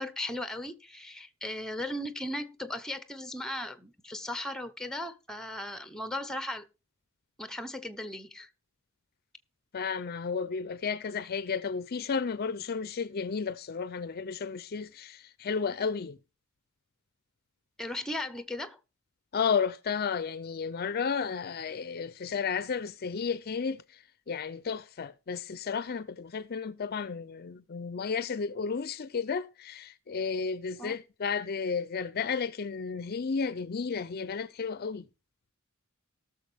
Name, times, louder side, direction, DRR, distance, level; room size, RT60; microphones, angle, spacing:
voice 1, 0.0-6.7 7.4-8.5 17.8-18.8 30.8-31.0, left 1 dB, 5° left, 0.8 m, -37 dB
voice 2, 9.7-16.2 19.3-35.1, left 5 dB, 45° left, 0.5 m, -33 dB
19.0 x 6.7 x 3.5 m
head